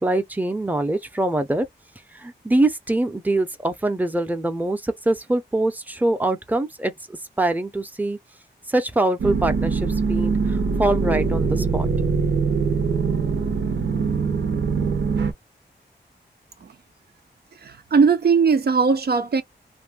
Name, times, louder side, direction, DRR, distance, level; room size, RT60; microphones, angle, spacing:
voice 1, 0.0-1.7 2.1-8.2 8.7-11.9, right 2 dB, 10° right, 0.7 m, -24 dB
sound 1, 9.2-15.3, right 5 dB, 90° right, 0.9 m, -23 dB
voice 2, 17.6-19.4, right 5 dB, 60° right, 0.5 m, -19 dB
2.6 x 2.2 x 3.4 m
cardioid pair, 70°, 18 cm